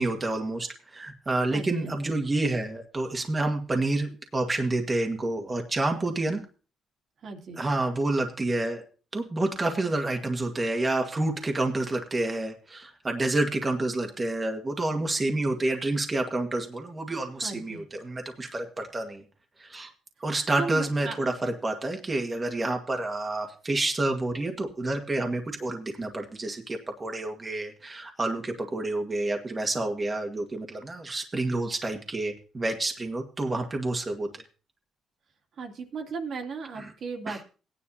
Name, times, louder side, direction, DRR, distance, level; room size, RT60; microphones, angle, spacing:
voice 1, 0.0-6.4 7.6-8.8 9.1-19.2 19.6-19.9 20.2-34.4 36.8-36.9 37.3-37.4, right 2 dB, 25° right, 3 dB, 1.8 m, -29 dB
voice 2, 1.5-2.0 7.2-7.6 17.4-17.8 20.6-21.2 35.6-37.4, right 5 dB, 60° right, 3 dB, 2.5 m, -36 dB
17.5 x 10.0 x 2.8 m, 0.36 s
cardioid pair, 90°, 0 cm